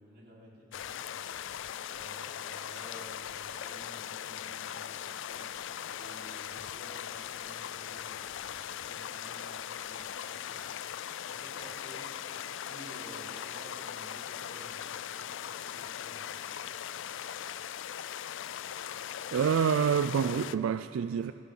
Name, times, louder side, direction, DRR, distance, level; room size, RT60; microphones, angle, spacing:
voice 1, 0.0-1.4 1.9-5.5 6.0-8.3 8.8-10.7 11.2-12.1 12.5-16.4, right 1 dB, 55° right, -6 dB, 4.4 m, -53 dB
sound 1, 0.7-20.6, left 10 dB, 65° left, 0.4 m, -40 dB
voice 2, 19.3-21.3, right 7 dB, 85° right, 11 dB, 0.3 m, -27 dB
27.5 x 11.0 x 3.8 m, 2.8 s
head